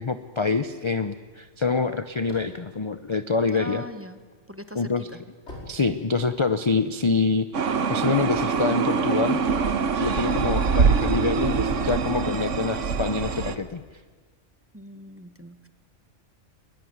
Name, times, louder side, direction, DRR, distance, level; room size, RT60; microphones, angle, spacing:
voice 1, 0.0-3.8 4.7-5.1 5.6-9.4 10.0-13.8, left 4 dB, 30° left, 11 dB, 0.6 m, -26 dB
sound 1, 2.2-3.9 4.4-6.6, left 1 dB, 60° left, 5.7 m, -45 dB
voice 2, 3.5-4.2 4.5-5.2 14.7-15.7, equal, 10° right, 10 dB, 1.1 m, -40 dB
sound 2, 7.5-13.6, right 5 dB, 75° right, 1.5 m, -24 dB
22.0 x 21.0 x 9.5 m, 1.5 s
omnidirectional pair, 1.3 m